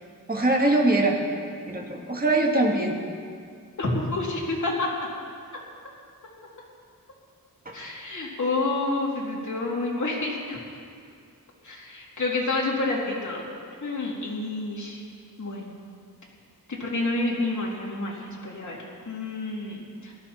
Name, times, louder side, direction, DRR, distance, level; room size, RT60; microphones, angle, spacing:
voice 1, 0.3-1.2 1.7-3.0 7.7-7.8, right 2 dB, 25° right, 0 dB, 1.9 m, -22 dB
voice 2, 3.8-4.9 7.7-10.6 11.6-13.4 13.8-15.0 15.4-15.7 16.7-18.8 19.0-20.1, left 2 dB, 55° left, -4 dB, 3.1 m, -29 dB
18.0 x 13.0 x 4.4 m, 2.2 s
wide cardioid pair, 95°, 36 cm